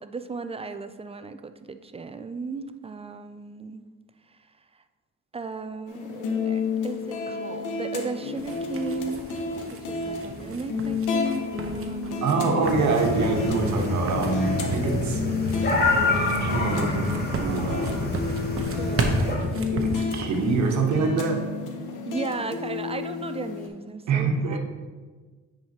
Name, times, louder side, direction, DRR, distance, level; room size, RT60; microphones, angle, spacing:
voice 1, 0.0-3.9 4.3-4.5 5.3-9.3 9.9-12.6 18.8-19.4 22.1-24.6, right 4 dB, 20° right, 9 dB, 0.3 m, -36 dB
sound 1, 5.9-23.7, left 4 dB, 80° left, 1.0 m, -31 dB
passos me, 8.4-20.9, right 2 dB, 45° right, 0.9 m, -35 dB
voice 2, 12.2-15.2 15.9-18.1 19.1-19.3 19.7-21.4 24.1-24.6, right 4 dB, 70° right, 2 dB, 1.2 m, -25 dB
sound 2, 12.6-19.4, left 2 dB, 30° left, 1.4 m, -27 dB
9.3 x 4.7 x 2.9 m, 1.4 s
cardioid pair, 90°, 30 cm